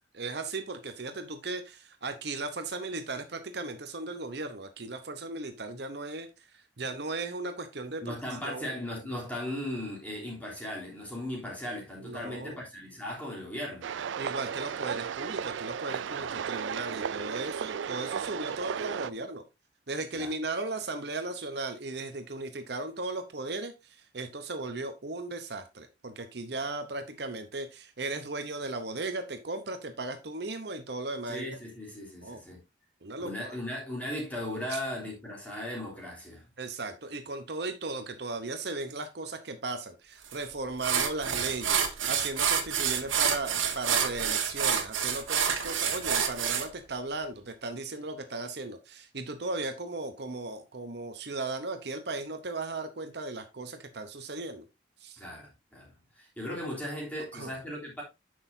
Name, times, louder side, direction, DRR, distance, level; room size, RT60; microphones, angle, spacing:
voice 1, 0.1-8.2 8.4-8.7 12.0-12.6 14.2-19.4 19.9-31.5 32.2-32.4 33.0-33.6 34.7-34.8 36.6-54.6 55.0-55.2 57.3-57.5, right 3 dB, 55° right, 0.9 m, -36 dB
voice 2, 8.0-13.9 16.1-16.3 20.1-20.3 31.3-32.6 33.2-36.5 55.2-58.0, left 1 dB, 10° left, 3.3 m, -37 dB
sound 1, 13.8-19.1, right 7 dB, 75° right, 0.4 m, -34 dB
sound 2, 40.3-40.4 40.8-46.7, right 7 dB, 90° right, 1.4 m, -28 dB
9.5 x 6.3 x 2.7 m
head